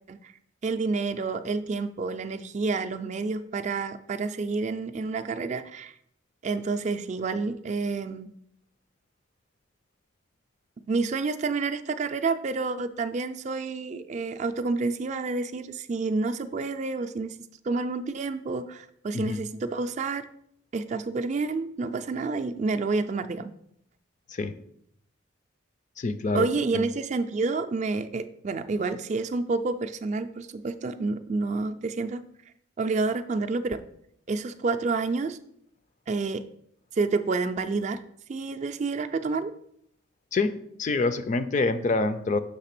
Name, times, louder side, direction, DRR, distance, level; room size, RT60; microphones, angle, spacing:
voice 1, 0.6-5.9 6.4-8.3 10.9-17.4 17.6-20.3 20.7-23.5 26.3-32.2 32.8-33.8 34.3-35.4 36.1-36.5 36.9-38.0 38.3-39.5, right 3 dB, 35° right, 10 dB, 0.3 m, -29 dB
voice 2, 26.0-26.5 26.7-26.8 40.3-42.4, left 3 dB, 40° left, 11 dB, 0.4 m, -26 dB
6.6 x 3.3 x 5.8 m, 0.71 s
head